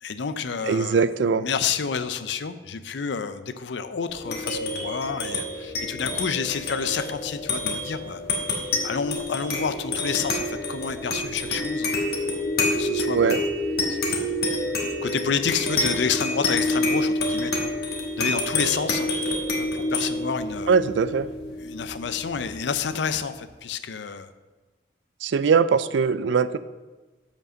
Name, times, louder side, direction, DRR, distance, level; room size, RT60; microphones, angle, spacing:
voice 1, 0.0-1.1 1.3-8.2 8.8-11.9 12.6-13.5 13.9-17.7 18.2-19.1 19.6-20.7 21.6-24.3, left 6 dB, 75° left, 12 dB, 0.5 m, -29 dB
voice 2, 0.7-1.5 13.1-13.4 20.7-21.3 25.2-26.6, right 5 dB, 80° right, 14 dB, 0.4 m, -21 dB
sound 1, 4.1-22.9, left 2 dB, 60° left, 1.3 m, -28 dB
7.3 x 5.3 x 6.3 m, 1.3 s
head